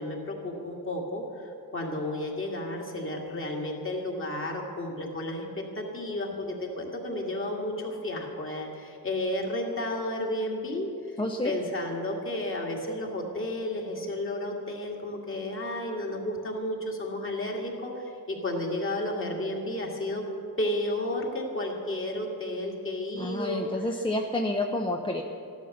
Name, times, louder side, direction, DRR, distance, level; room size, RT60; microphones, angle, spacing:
voice 1, 0.0-10.9 11.4-20.2 20.6-23.7, left 1 dB, 30° left, 0 dB, 2.2 m, -32 dB
voice 2, 11.2-11.5 23.2-25.2, left 1 dB, 15° left, 2 dB, 0.6 m, -29 dB
14.0 x 11.5 x 6.6 m, 2.5 s
wide cardioid pair, 155°, 39 cm